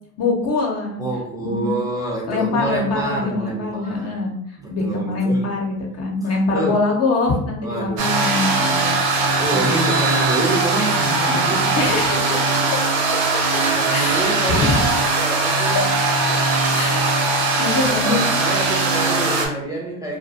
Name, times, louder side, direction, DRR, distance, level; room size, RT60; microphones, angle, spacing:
voice 1, 0.2-1.0 1.4-1.7 2.3-4.4 4.7-9.9 11.3-11.4 11.8-12.2 13.9-15.0 16.7-17.3 17.6-18.2, left 3 dB, 45° left, 0 dB, 0.7 m, -23 dB
voice 2, 1.0-4.1 4.6-5.5 6.5-6.8 7.6-8.2 8.6-11.8 12.3-12.4 13.6-14.8 15.2-15.9 16.3-16.8 17.2-17.4 17.8-20.2, right 2 dB, 10° right, -3 dB, 0.6 m, -27 dB
sound 1, 8.0-19.5, right 3 dB, 65° right, 0.8 m, -20 dB
2.3 x 2.2 x 2.6 m, 0.71 s
supercardioid pair, 95°, 37 cm